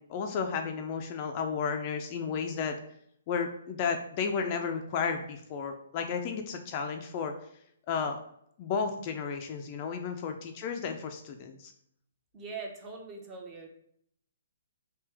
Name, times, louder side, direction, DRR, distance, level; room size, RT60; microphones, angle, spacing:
voice 1, 0.0-2.8 3.3-7.3 7.9-8.2 8.6-11.7, left 6 dB, 35° left, 5 dB, 0.3 m, -33 dB
voice 2, 12.3-13.7, right 4 dB, 20° right, 2 dB, 0.6 m, -41 dB
3.4 x 2.7 x 3.3 m, 0.71 s
hypercardioid pair, 155°, 0 cm